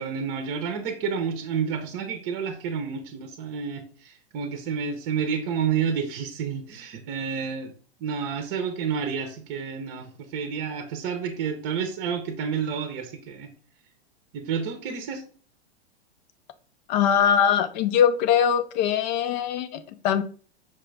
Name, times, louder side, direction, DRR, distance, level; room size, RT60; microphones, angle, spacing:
voice 1, 0.0-7.7 8.0-13.5 14.3-15.2, right 6 dB, 40° right, 6 dB, 0.7 m, -30 dB
voice 2, 16.9-20.2, left 8 dB, 45° left, 12 dB, 0.6 m, -22 dB
5.9 x 2.4 x 3.2 m, 0.42 s
hypercardioid pair, 130°, 33 cm